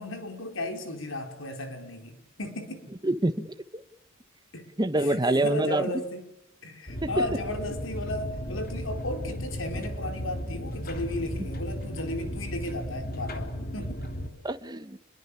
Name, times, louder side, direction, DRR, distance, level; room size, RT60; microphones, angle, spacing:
voice 1, 0.0-2.9 4.5-4.7 5.0-6.3 6.6-14.0, left 1 dB, 75° left, 6 dB, 4.8 m, -35 dB
voice 2, 3.0-3.5 3.7-3.8 4.8-6.0 7.0-7.3 14.4-15.0, right 2 dB, 20° right, 11 dB, 1.1 m, -26 dB
sound 1, 6.9-14.3, equal, 50° left, 3.2 m, -35 dB
28.0 x 22.0 x 8.6 m, 0.85 s
head